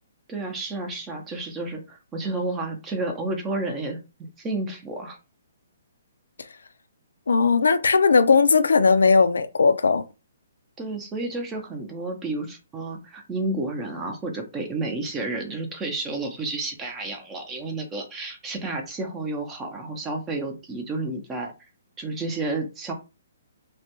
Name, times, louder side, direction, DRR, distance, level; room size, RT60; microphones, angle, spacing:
voice 1, 0.3-4.0 4.4-5.2 10.8-21.5 22.0-22.9, right 2 dB, 15° right, 0.6 m, -31 dB
voice 2, 7.3-10.0, left 4 dB, 85° left, 0.3 m, -18 dB
2.3 x 2.2 x 2.9 m
hypercardioid pair, 145°, 0 cm